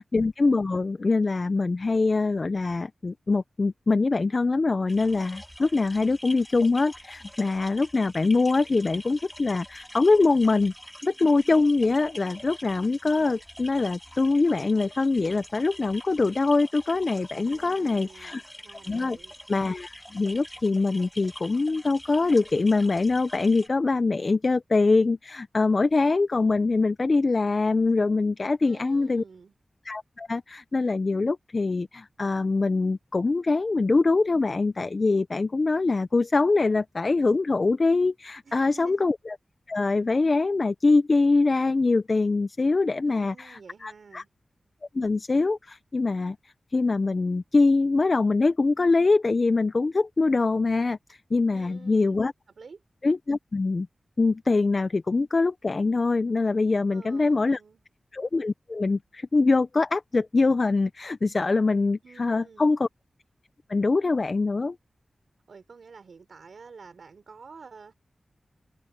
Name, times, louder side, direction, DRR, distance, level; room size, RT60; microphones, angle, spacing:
voice 1, 0.0-10.7 11.0-18.4 18.7-19.2 19.5-29.2 29.9-39.4 39.7-44.2 44.9-46.4 46.7-52.3 53.0-53.9 54.2-57.6 58.1-62.9 63.7-64.8, left 3 dB, 50° left, 0.6 m, -23 dB
sound 1, 4.9-23.7, equal, 5° left, 2.6 m, -45 dB
voice 2, 17.4-19.3 28.6-29.5 38.4-39.1 43.0-44.3 51.5-52.2 52.6-52.8 56.9-57.8 62.0-62.7 65.5-67.9, right 5 dB, 80° right, 4.0 m, -49 dB
wide cardioid pair, 60°, 0 cm